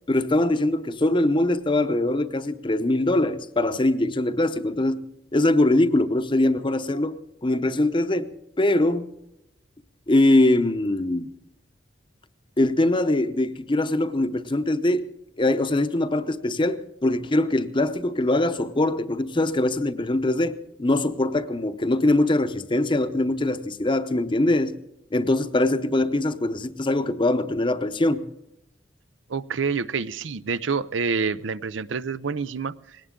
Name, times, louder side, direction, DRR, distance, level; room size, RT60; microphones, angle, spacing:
voice 1, 0.1-5.0 5.3-9.1 10.1-11.3 12.6-15.1 15.4-24.7 25.1-28.3, left 1 dB, 25° left, 0.8 m, -22 dB
voice 2, 29.3-33.0, right 5 dB, 85° right, 0.6 m, -27 dB
20.0 x 18.0 x 3.8 m
head